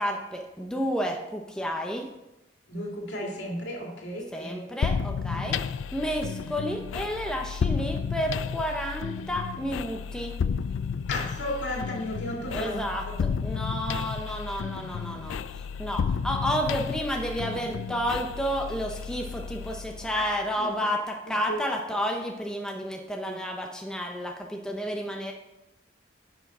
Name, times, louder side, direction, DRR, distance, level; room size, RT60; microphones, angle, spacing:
voice 1, 0.0-2.1 4.3-10.4 12.5-25.3, equal, 5° left, 1 dB, 0.6 m, -31 dB
voice 2, 2.7-4.6 5.3-5.5 11.1-13.1 20.1-20.3 20.6-20.7 21.5-21.6 23.2-23.3, left 1 dB, 70° left, -1 dB, 2.3 m, -34 dB
sound 1, 4.8-20.5, left 6 dB, 85° left, 0.3 m, -32 dB
11.0 x 5.9 x 4.2 m, 0.95 s
head